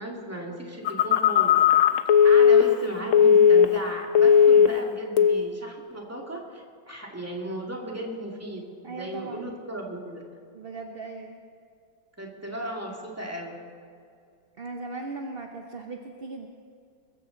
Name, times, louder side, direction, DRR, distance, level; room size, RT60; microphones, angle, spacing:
voice 1, 0.0-1.6 2.2-10.2 12.2-13.5, right 1 dB, 10° right, -1 dB, 2.2 m, -36 dB
Telephone, 0.8-3.9 4.1-4.8 5.2-5.5, left 7 dB, 55° left, 0.9 m, -17 dB
voice 2, 8.8-9.5 10.5-11.4 14.6-16.5, right 3 dB, 45° right, 3 dB, 0.8 m, -38 dB
21.5 x 14.5 x 3.9 m, 2.3 s
omnidirectional pair, 2.0 m